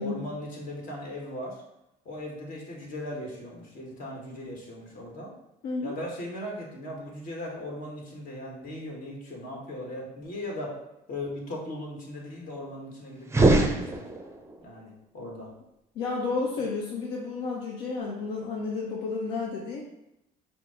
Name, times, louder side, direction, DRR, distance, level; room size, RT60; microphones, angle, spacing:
voice 1, 0.0-1.6 2.0-5.3 5.8-10.8 11.1-14.0 14.6-15.5, left 1 dB, 55° left, -1 dB, 1.4 m, -38 dB
voice 2, 5.6-6.0 16.0-19.8, left 4 dB, 80° left, -2 dB, 0.7 m, -31 dB
sound 1, 13.2-14.6, right 2 dB, 15° right, 0.5 m, -22 dB
5.0 x 2.0 x 4.7 m, 0.88 s
cardioid pair, 100°, 17 cm